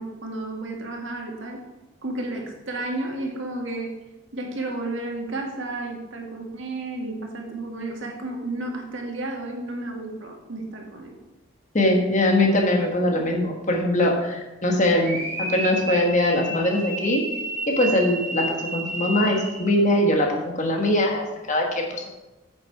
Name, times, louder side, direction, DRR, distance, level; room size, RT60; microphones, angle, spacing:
voice 1, 0.0-1.6 2.0-3.9 4.3-11.1, right 2 dB, 65° right, 1 dB, 1.8 m, -32 dB
voice 2, 11.7-17.2 17.7-20.3 20.6-22.1, left 1 dB, 35° left, 1 dB, 1.4 m, -22 dB
sound 1, 15.0-19.7, right 2 dB, 35° right, 2.3 m, -31 dB
9.5 x 6.7 x 4.6 m, 1.1 s
head